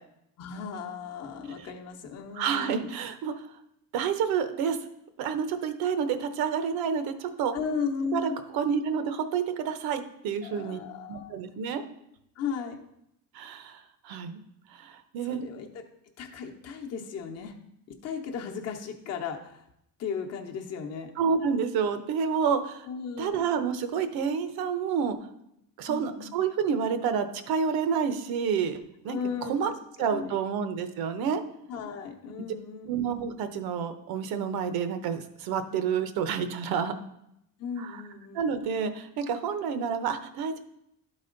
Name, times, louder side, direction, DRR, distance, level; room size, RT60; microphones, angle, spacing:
voice 1, 0.4-2.9 7.5-8.4 10.4-11.4 12.4-12.8 15.2-15.8 16.2-17.5 18.0-19.7 20.0-21.1 22.9-23.4 25.9-26.3 29.1-30.3 31.7-33.3 37.6-38.5, left 6 dB, 45° left, 2 dB, 0.9 m, -36 dB
voice 2, 2.3-3.3 3.9-4.8 5.2-7.5 8.1-10.8 11.1-11.8 13.3-14.4 14.7-15.4 21.2-22.9 23.2-25.2 25.8-28.8 29.0-29.2 29.5-29.7 30.0-31.4 32.9-36.9 37.8-37.9 38.3-40.6, right 6 dB, 75° right, 9 dB, 0.9 m, -29 dB
12.0 x 4.1 x 3.8 m, 0.79 s
cardioid pair, 160°, 36 cm